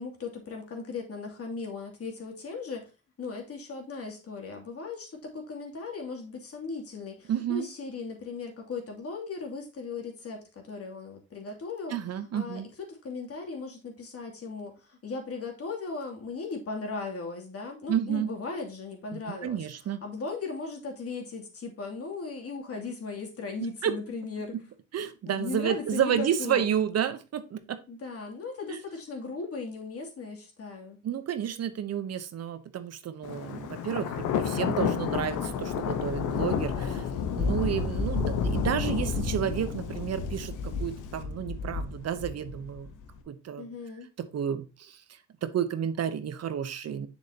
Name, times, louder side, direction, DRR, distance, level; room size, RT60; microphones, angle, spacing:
voice 1, 0.0-2.9 3.2-12.0 12.3-19.7 20.0-24.6 25.3-26.7 27.9-31.0 43.6-44.1, left 4 dB, 50° left, 2.8 m, -37 dB
voice 2, 7.3-7.7 11.9-12.7 17.9-18.3 19.1-20.0 23.8-23.9 24.9-27.8 28.7-28.8 31.0-37.1 37.3-42.9 43.3-43.7 44.2-47.1, right 9 dB, 55° right, 0.9 m, -31 dB
Thunder, 33.2-43.1, left 6 dB, 85° left, 1.1 m, -30 dB
7.4 x 6.7 x 2.9 m
cardioid pair, 90°, 30 cm